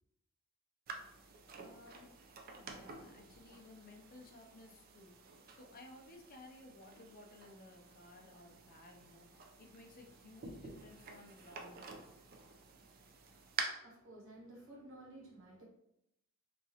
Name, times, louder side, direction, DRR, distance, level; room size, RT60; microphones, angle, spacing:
sound 1, 0.9-13.6, right 5 dB, 45° right, 0.4 m, -50 dB
voice 1, 1.6-2.1 2.5-12.1, left 2 dB, 40° left, 3 dB, 0.5 m, -57 dB
voice 2, 13.6-15.6, right 1 dB, 60° right, -5 dB, 1.1 m, -54 dB
2.9 x 2.4 x 2.7 m, 0.78 s
head